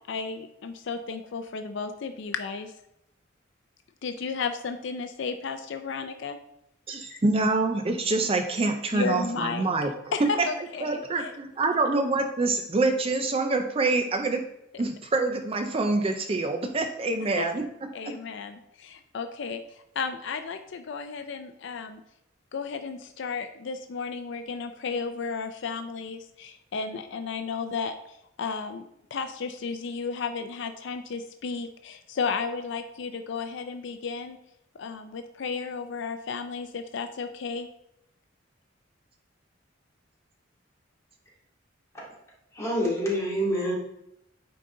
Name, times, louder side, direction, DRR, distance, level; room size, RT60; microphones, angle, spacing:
voice 1, 0.1-2.7 4.0-6.4 7.1-7.2 8.9-9.6 10.1-11.3 14.7-14.8 17.4-17.5 17.9-22.0 22.5-34.4 34.7-37.7, left 5 dB, 65° left, 8 dB, 0.4 m, -33 dB
voice 2, 6.9-9.9 10.2-10.5 10.8-14.5 14.8-17.7 18.0-18.1, right 3 dB, 30° right, 5 dB, 0.5 m, -26 dB
voice 3, 42.5-43.7, equal, 15° left, -6 dB, 2.4 m, -27 dB
9.2 x 3.9 x 3.7 m, 0.82 s
head